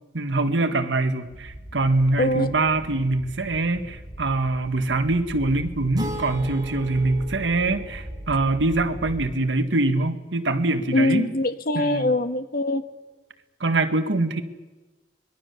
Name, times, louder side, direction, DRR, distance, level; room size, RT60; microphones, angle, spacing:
voice 1, 0.1-11.3 11.8-12.1 13.6-14.4, right 2 dB, 80° right, 8 dB, 1.7 m, -24 dB
sound 1, 1.3-9.3, equal, 40° right, 7.2 m, -39 dB
voice 2, 2.2-2.5 10.9-12.8, left 1 dB, 55° left, 10 dB, 1.3 m, -23 dB
sound 2, 5.9-8.8, right 1 dB, 25° right, 4.6 m, -37 dB
25.5 x 21.0 x 6.9 m, 1.2 s
head